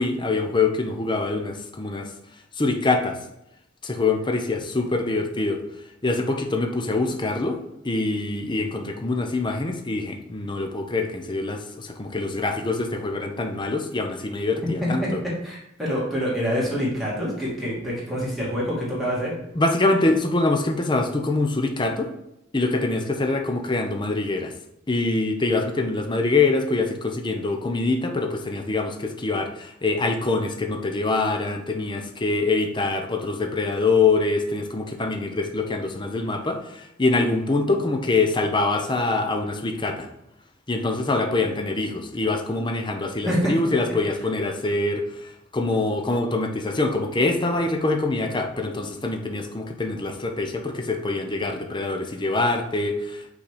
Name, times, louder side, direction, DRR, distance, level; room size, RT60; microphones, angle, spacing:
voice 1, 0.0-2.1 2.6-3.2 3.8-5.6 6.0-7.6 7.8-15.2 19.6-22.1 22.5-24.5 24.9-40.1 40.7-53.3, left 3 dB, 25° left, 5 dB, 0.7 m, -24 dB
voice 2, 15.4-19.3 43.3-43.5, equal, ahead, -7 dB, 2.5 m, -26 dB
5.7 x 4.1 x 5.1 m, 0.84 s
head